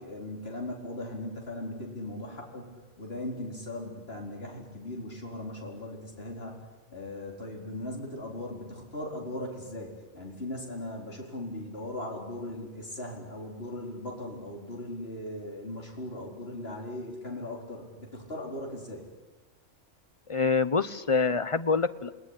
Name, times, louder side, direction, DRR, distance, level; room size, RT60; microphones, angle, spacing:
voice 1, 0.0-6.6 6.9-19.0, left 1 dB, 55° left, 0 dB, 4.7 m, -38 dB
voice 2, 20.3-22.1, left 4 dB, 30° left, 12 dB, 1.0 m, -26 dB
29.0 x 20.0 x 9.9 m, 1.2 s
omnidirectional pair, 1.2 m